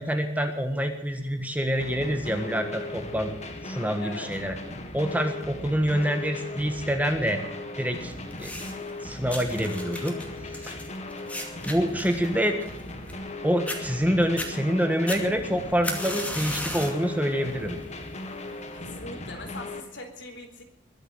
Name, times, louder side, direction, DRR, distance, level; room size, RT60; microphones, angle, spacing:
voice 1, 0.0-3.3 3.6-4.5 4.9-7.4 7.8-8.1 8.4-8.5 9.0-10.2 10.6-10.8 11.6-12.6 13.4-17.8, equal, 10° right, 6 dB, 1.5 m, -26 dB
sound 1, 1.8-19.8, left 2 dB, 35° left, 1.9 m, -38 dB
voice 2, 4.0-4.3 6.0-6.1 18.7-20.6, left 2 dB, 65° left, 4 dB, 3.9 m, -41 dB
sound 2, 8.3-8.9 9.3-13.3 13.7-13.8 14.2-14.5 15.1-17.0 17.5-17.8 18.6-18.7, left 1 dB, 5° left, 2.4 m, -35 dB
22.0 x 8.0 x 8.0 m, 0.83 s
head